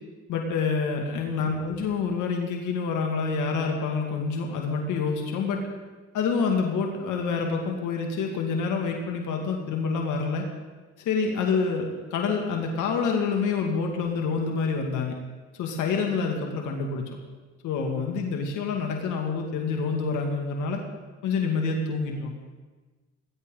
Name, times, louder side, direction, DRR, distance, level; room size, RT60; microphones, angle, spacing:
voice 1, 0.3-5.6 6.1-10.5 11.0-15.1 15.6-17.0 17.6-20.8 21.2-22.4, left 5 dB, 90° left, 2 dB, 2.2 m, -27 dB
19.0 x 18.5 x 3.9 m, 1.3 s
cardioid pair, 90°, 30 cm